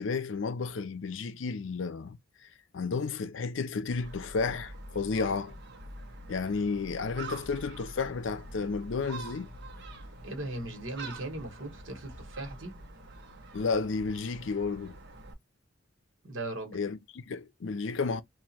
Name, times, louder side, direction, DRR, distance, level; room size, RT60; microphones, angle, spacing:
voice 1, 0.0-2.2 2.7-5.6 6.3-9.5 13.5-15.0 16.7-18.2, left 4 dB, 70° left, 0.5 m, -32 dB
Gull seagull, 3.9-15.3, right 2 dB, 60° right, 1.1 m, -46 dB
voice 2, 10.2-12.7 16.2-16.8, right 2 dB, 75° right, 1.4 m, -38 dB
2.9 x 2.6 x 4.2 m
head